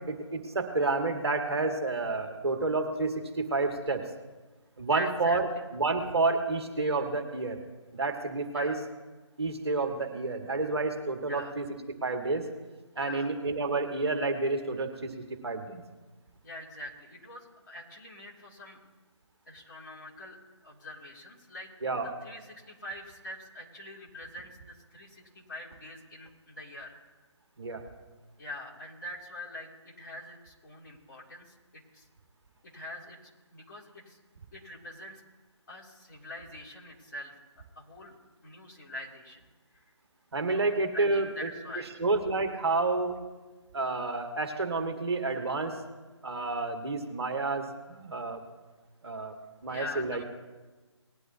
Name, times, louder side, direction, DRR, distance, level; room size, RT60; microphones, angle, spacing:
voice 1, 0.1-4.0 4.8-7.6 7.9-8.7 9.4-11.7 12.0-12.5 12.9-15.1 15.4-15.8 21.8-22.1 27.6-27.8 40.3-41.3 42.0-43.2 43.7-45.8 46.2-48.4 49.0-49.3 49.6-50.2, right 3 dB, 55° right, 4 dB, 1.7 m, -29 dB
voice 2, 4.9-5.4 8.5-8.8 11.2-11.6 12.9-13.3 16.4-18.8 19.5-20.4 20.6-21.7 22.0-27.0 28.4-32.0 32.7-34.2 34.5-35.2 35.7-37.4 37.8-38.1 38.4-39.5 39.7-39.8 40.5-41.9 49.7-50.2, left 1 dB, 40° left, -4 dB, 2.8 m, -44 dB
20.0 x 11.0 x 2.8 m, 1.2 s
figure-of-eight pair, 150°, 16 cm